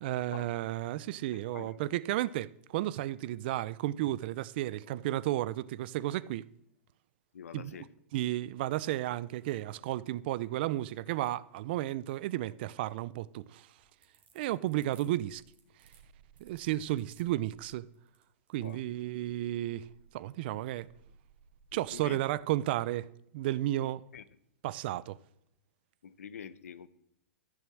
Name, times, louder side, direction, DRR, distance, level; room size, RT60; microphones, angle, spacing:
voice 1, 0.0-6.5 7.5-7.8 8.1-13.7 14.3-15.4 16.4-17.9 18.5-19.9 20.1-20.9 21.7-23.1 23.3-24.0 24.6-25.2, right 15 dB, 45° right, 0.5 m, -33 dB
voice 2, 1.5-1.8 7.3-7.9 18.6-18.8 21.9-22.2 23.8-24.2 26.0-26.9, left 8 dB, 90° left, 1.0 m, -46 dB
sound 1, 13.8-18.8, right 5 dB, 20° right, 2.2 m, -64 dB
sound 2, 15.6-17.9 19.1-22.6, right 6 dB, 75° right, 1.3 m, -63 dB
14.0 x 7.2 x 7.6 m
hypercardioid pair, 155°, 8 cm